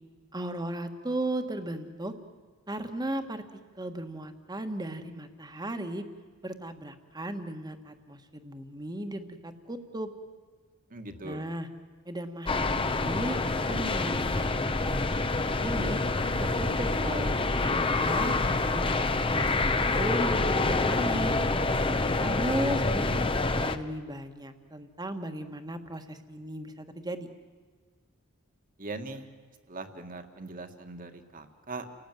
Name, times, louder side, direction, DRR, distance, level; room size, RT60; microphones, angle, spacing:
voice 1, 0.3-2.1 2.7-3.4 3.8-6.0 6.4-10.1 11.2-11.7 12.0-14.6 14.8-15.1 15.4-16.0 16.4-19.5 19.9-21.4 22.2-27.3, right 1 dB, 20° right, 7 dB, 1.6 m, -36 dB
voice 2, 10.9-11.5 22.2-22.9 28.8-29.3 29.7-31.8, right 2 dB, 40° right, 7 dB, 2.0 m, -40 dB
sound 1, 12.5-23.8, left 3 dB, 25° left, 0.9 m, -27 dB
30.0 x 18.5 x 9.3 m, 1.5 s
head